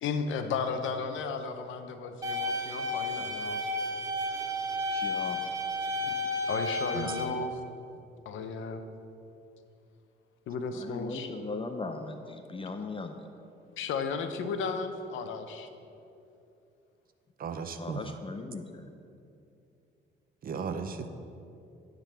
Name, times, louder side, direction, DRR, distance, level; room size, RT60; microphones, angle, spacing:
voice 1, 0.0-3.6 6.0-6.1 6.5-7.6 8.3-8.8 10.5-11.3 13.8-15.7, left 5 dB, 80° left, 7 dB, 0.8 m, -34 dB
sound 1, 2.2-7.2, left 1 dB, 15° right, 1.9 m, -32 dB
voice 2, 4.9-5.4 10.8-13.1 17.8-18.8, left 3 dB, 25° left, 6 dB, 0.5 m, -38 dB
voice 3, 17.4-18.0 20.4-21.1, right 6 dB, 45° right, 8 dB, 0.7 m, -35 dB
10.0 x 3.9 x 6.8 m, 2.7 s
cardioid pair, 90°, 20 cm